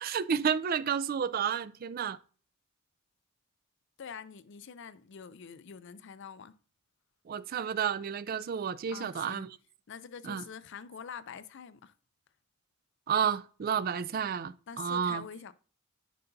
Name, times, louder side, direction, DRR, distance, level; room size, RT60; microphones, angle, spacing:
voice 1, 0.0-2.2 7.3-9.6 10.2-10.4 13.1-15.2, right 7 dB, 45° right, 0.3 m, -31 dB
voice 2, 4.0-6.5 8.9-9.5 9.9-11.9 14.7-15.5, left 6 dB, 60° left, 0.5 m, -45 dB
9.3 x 5.6 x 2.6 m
head